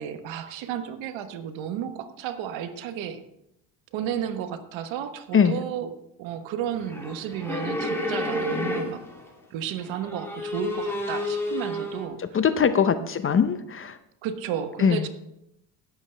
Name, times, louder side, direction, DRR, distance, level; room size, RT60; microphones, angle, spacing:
voice 1, 0.0-3.2 3.9-9.0 9.5-12.4 14.2-15.1, right 9 dB, 70° right, 9 dB, 1.2 m, -33 dB
sound 1, 6.8-9.3 9.8-12.1, left 1 dB, 5° left, 2.5 m, -30 dB
voice 2, 12.3-14.0 14.8-15.1, left 7 dB, 25° left, 11 dB, 0.6 m, -21 dB
16.5 x 7.2 x 3.3 m, 0.81 s
supercardioid pair, 90°, 47 cm